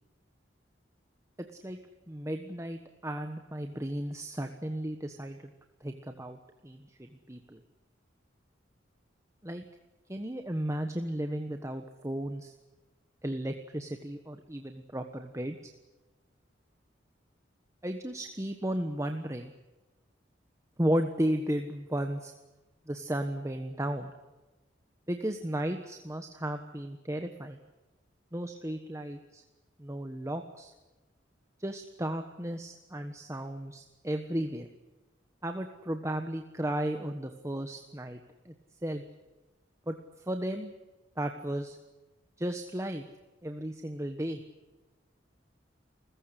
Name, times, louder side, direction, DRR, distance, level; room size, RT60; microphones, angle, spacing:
voice 1, 1.4-1.8 2.1-5.5 5.8-6.4 6.6-7.6 9.4-9.6 10.1-12.5 13.2-15.6 17.8-19.5 20.8-22.3 22.9-24.1 25.1-27.6 28.3-29.4 29.8-30.7 31.6-34.7 35.4-38.2 38.4-38.5 38.8-39.0 39.9-40.0 40.3-40.7 41.2-41.8 42.4-43.0 43.4-44.4, right 1 dB, 15° right, 6 dB, 1.3 m, -34 dB
29.0 x 15.0 x 10.0 m, 1.1 s
head